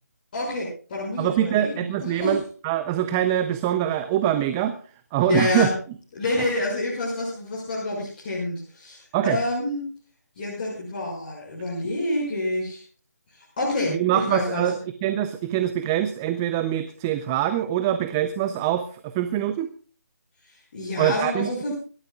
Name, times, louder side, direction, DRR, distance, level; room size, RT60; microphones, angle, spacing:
voice 1, 0.3-2.3 5.3-5.7 6.1-9.8 10.4-12.8 13.3-14.7 20.5-21.8, left 2 dB, 30° left, -4 dB, 5.8 m, -28 dB
voice 2, 1.2-4.8 5.1-5.7 9.1-9.4 13.9-14.7 15.0-19.7 21.0-21.8, right 11 dB, 10° right, 10 dB, 0.5 m, -24 dB
25.0 x 13.0 x 2.3 m, 0.40 s
figure-of-eight pair, 165°, 10 cm